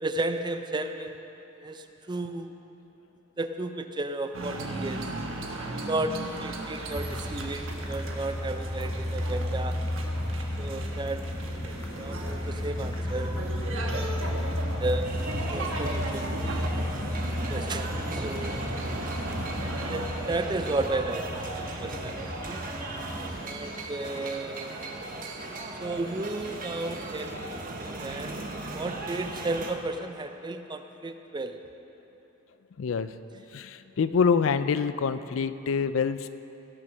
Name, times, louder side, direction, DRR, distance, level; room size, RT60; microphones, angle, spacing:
voice 1, 0.0-1.2 1.6-2.5 3.4-5.0 5.9-6.1 6.4-9.8 10.6-11.2 11.6-13.4 13.7-14.5 14.8-15.1 15.5-16.7 17.5-18.7 19.9-22.7 23.4-24.8 25.8-27.6 28.0-28.3 28.7-31.6, right 2 dB, 20° right, 7 dB, 0.5 m, -33 dB
sound 1, 4.3-20.1, right 2 dB, 70° right, 1.2 m, -37 dB
sound 2, 6.9-23.4, left 1 dB, 15° left, 1.1 m, -33 dB
sound 3, 15.0-29.7, right 2 dB, 40° right, 1.0 m, -37 dB
voice 2, 32.8-33.1 33.5-36.3, left 5 dB, 70° left, 12 dB, 0.4 m, -26 dB
16.5 x 6.2 x 6.2 m, 3.0 s
head